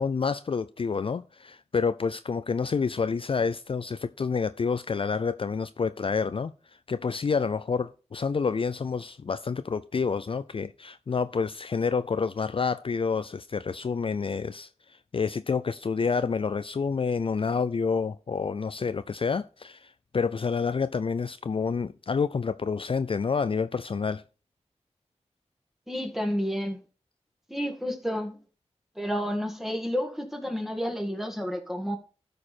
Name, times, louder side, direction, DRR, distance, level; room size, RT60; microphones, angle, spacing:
voice 1, 0.0-6.5 6.9-24.2, left 5 dB, 50° left, 0.3 m, -28 dB
voice 2, 25.9-26.8 27.5-28.4 29.0-32.0, equal, ahead, 2.0 m, -30 dB
13.0 x 4.9 x 4.2 m
wide cardioid pair, 50°, 12 cm